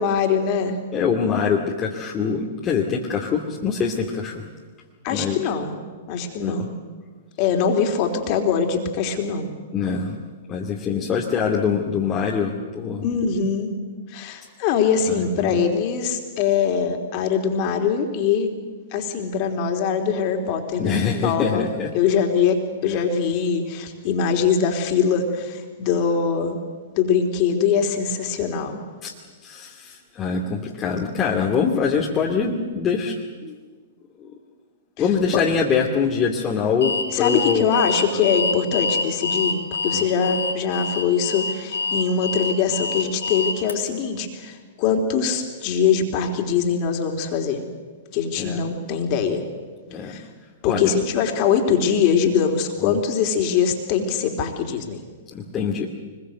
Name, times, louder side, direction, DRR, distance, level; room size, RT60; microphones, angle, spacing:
voice 1, 0.0-0.8 5.0-5.8 6.1-6.7 7.4-9.5 13.0-13.8 14.1-18.5 18.9-21.7 21.9-26.6 27.0-28.8 35.3-35.4 37.1-47.6 48.1-49.4 50.0-50.3 50.6-55.0, left 6 dB, 40° left, 4 dB, 3.7 m, -22 dB
voice 2, 0.9-4.5 5.1-5.4 6.4-6.7 9.7-10.2 10.5-13.0 15.2-15.6 20.8-21.9 29.0-29.1 29.4-33.5 35.0-37.7 39.9-40.1 48.3-48.6 49.9-50.2 50.6-50.9 52.8-53.0 55.3-55.9, left 6 dB, 25° left, -2 dB, 2.5 m, -24 dB
Alarm, 36.8-43.7, left 4 dB, 75° left, 4.9 m, -26 dB
24.5 x 21.5 x 8.1 m, 1.4 s
figure-of-eight pair, 110°, 0 cm